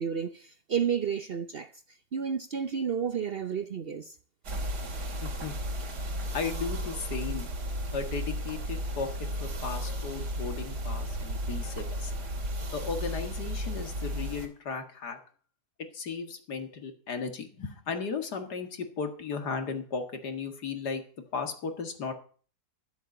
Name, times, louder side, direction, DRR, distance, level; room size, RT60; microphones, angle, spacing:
voice 1, 0.0-1.7 2.1-4.1, right 7 dB, 50° right, 0.8 m, -31 dB
sound 1, 4.4-14.5, equal, 85° right, 3.3 m, -34 dB
voice 2, 5.2-5.5 6.3-7.5 7.9-12.1 12.7-15.2 15.9-21.0 21.3-22.1, left 5 dB, 80° left, 2.4 m, -35 dB
12.5 x 8.0 x 7.8 m
omnidirectional pair, 1.7 m